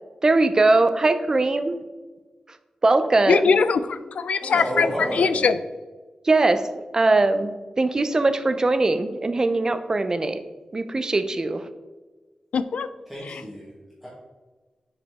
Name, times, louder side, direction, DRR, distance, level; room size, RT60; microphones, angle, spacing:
voice 1, 0.2-1.8 2.8-3.4 6.2-10.4 10.7-11.6, right 2 dB, 30° right, 10 dB, 0.4 m, -21 dB
voice 2, 3.3-5.6 12.5-12.9 13.2-13.4, left 5 dB, 85° left, 13 dB, 0.4 m, -21 dB
voice 3, 4.4-5.5 13.1-13.7 14.0-14.1, equal, ahead, -7 dB, 1.4 m, -30 dB
7.0 x 5.0 x 3.5 m, 1.3 s
wide cardioid pair, 135°, 2 cm